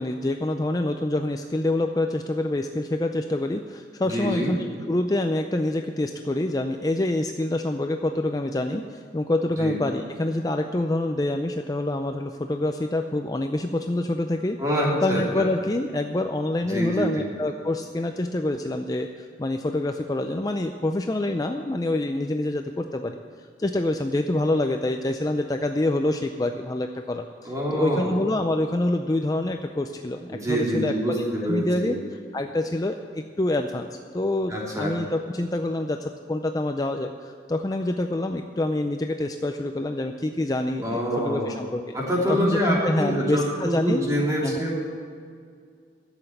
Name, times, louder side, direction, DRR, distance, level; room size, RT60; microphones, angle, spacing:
voice 1, 0.0-14.6 15.0-32.0 32.3-41.8 42.3-44.1 44.4-44.6, left 1 dB, 20° left, 5 dB, 0.4 m, -26 dB
voice 2, 4.0-4.5 9.6-9.7 14.6-15.4 16.6-17.3 27.4-28.1 30.3-32.0 34.5-34.9 40.8-41.5 41.9-44.8, equal, 20° right, -4 dB, 3.0 m, -26 dB
11.5 x 7.9 x 9.5 m, 2.2 s
head